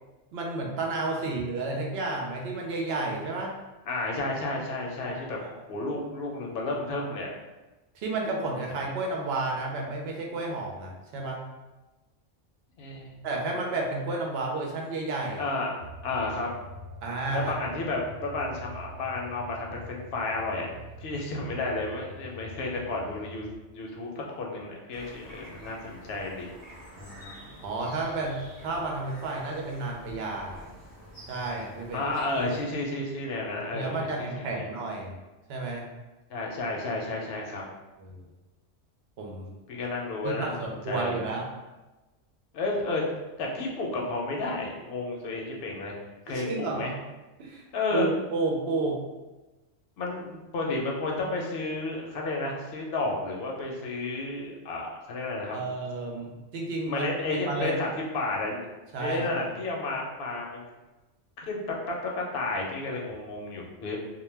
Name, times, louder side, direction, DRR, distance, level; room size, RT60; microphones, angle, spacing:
voice 1, 0.3-3.5 5.1-5.5 7.9-11.5 13.2-15.4 17.0-17.5 27.0-30.7 31.3-32.0 32.5-32.6 33.7-35.1 35.5-35.9 38.0-38.2 39.2-39.5 40.2-41.5 46.3-46.9 47.4-47.6 47.9-49.0 55.5-57.8 58.9-59.5, right 3 dB, 65° right, -1 dB, 0.8 m, -31 dB
voice 2, 3.9-5.4 5.7-7.3 12.8-13.2 15.4-15.7 16.0-16.5 17.3-23.4 23.7-26.5 31.9-34.7 36.3-37.6 39.7-41.3 42.5-43.0 43.4-45.9 46.3-46.9 47.7-48.1 50.0-55.5 56.8-58.6 59.0-60.6 61.4-61.6 61.9-64.0, left 2 dB, 65° left, -1 dB, 0.7 m, -32 dB
sound 1, 15.8-23.6, equal, 90° right, 1.0 m, -45 dB
sound 2, 24.9-32.6, equal, 20° right, 1.0 m, -48 dB
2.2 x 2.1 x 3.2 m, 1.1 s
omnidirectional pair, 1.2 m